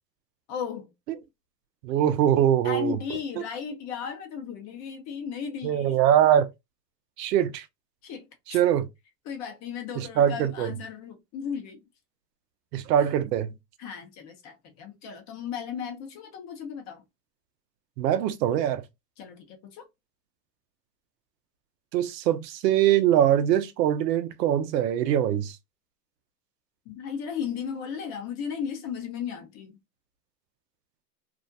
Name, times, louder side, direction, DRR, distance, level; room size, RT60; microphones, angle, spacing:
voice 1, 0.5-0.9 2.6-6.0 8.0-8.6 9.2-11.8 13.8-17.0 19.2-19.9 26.9-29.8, left 7 dB, 35° left, 0.7 m, -35 dB
voice 2, 1.8-3.0 5.6-6.5 7.2-7.7 8.5-8.9 10.0-10.7 12.7-13.5 18.0-18.8 21.9-25.6, right 10 dB, 75° right, 0.6 m, -23 dB
2.5 x 2.1 x 2.5 m
hypercardioid pair, 120°, 50 cm